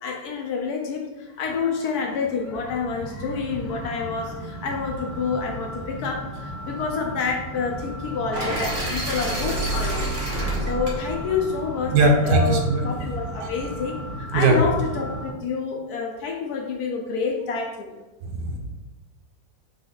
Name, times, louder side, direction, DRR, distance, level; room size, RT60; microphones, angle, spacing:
voice 1, 0.0-10.1 10.6-18.0, left 5 dB, 70° left, 1 dB, 1.1 m, -28 dB
sound 1, 1.3-15.3, right 1 dB, 55° left, 1.7 m, -36 dB
sound 2, 8.3-12.4, right 1 dB, 40° right, 0.8 m, -29 dB
voice 2, 11.9-12.8 13.4-13.5 14.3-14.6 18.2-18.6, right 2 dB, 70° right, 2 dB, 1.3 m, -19 dB
4.1 x 3.2 x 3.9 m, 1.1 s
omnidirectional pair, 1.9 m